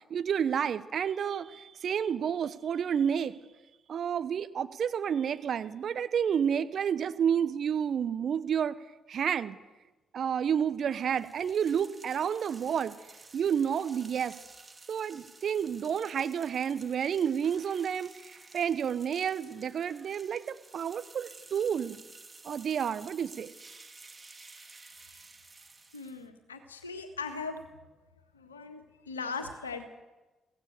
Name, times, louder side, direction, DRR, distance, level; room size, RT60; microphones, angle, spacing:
voice 1, 0.0-3.4 3.9-8.8 9.1-9.6 10.1-12.9 13.3-14.3 14.9-22.0 22.4-23.5, right 8 dB, 55° right, 12 dB, 1.2 m, -30 dB
sound 1, 11.0-26.3, right 3 dB, 30° right, 2.8 m, -53 dB
voice 2, 25.9-27.7 28.3-29.8, left 4 dB, 90° left, 7 dB, 1.7 m, -39 dB
23.0 x 17.5 x 6.8 m, 1.1 s
figure-of-eight pair, 40°, 0 cm